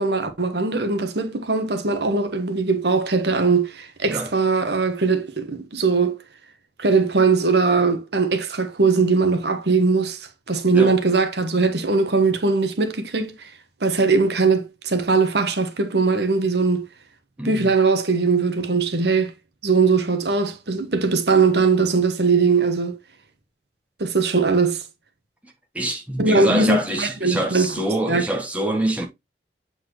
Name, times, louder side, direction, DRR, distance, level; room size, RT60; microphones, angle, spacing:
voice 1, 0.0-6.2 6.8-13.5 13.8-16.8 17.4-19.3 19.6-23.0 24.0-24.8 26.2-27.7 28.1-28.2, right 4 dB, 70° right, 1.2 m, -20 dB
voice 2, 25.4-29.1, right 1 dB, 10° right, 1.3 m, -25 dB
7.9 x 4.3 x 3.0 m
head